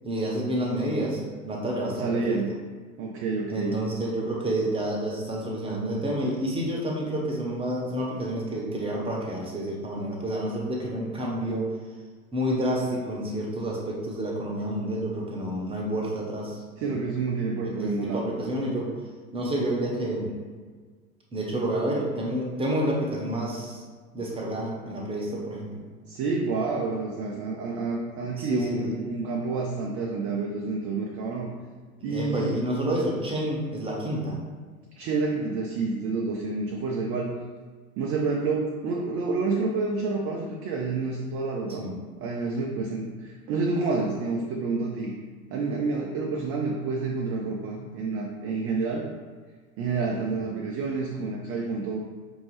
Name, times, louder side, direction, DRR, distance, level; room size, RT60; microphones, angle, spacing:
voice 1, 0.0-2.4 3.5-11.7 12.3-17.0 17.6-19.0 19.3-20.3 21.3-23.8 24.1-25.8 28.4-28.9 32.0-34.4 41.8-41.9, right 1 dB, 15° right, -2 dB, 0.9 m, -29 dB
voice 2, 2.0-2.6 3.0-3.8 16.8-18.2 26.1-31.5 32.0-32.6 35.0-37.4 38.0-41.9 42.2-45.1 45.5-49.1 49.8-52.0, right 3 dB, 35° right, 0 dB, 0.5 m, -29 dB
5.2 x 2.7 x 3.1 m, 1.5 s
figure-of-eight pair, 75°, 43 cm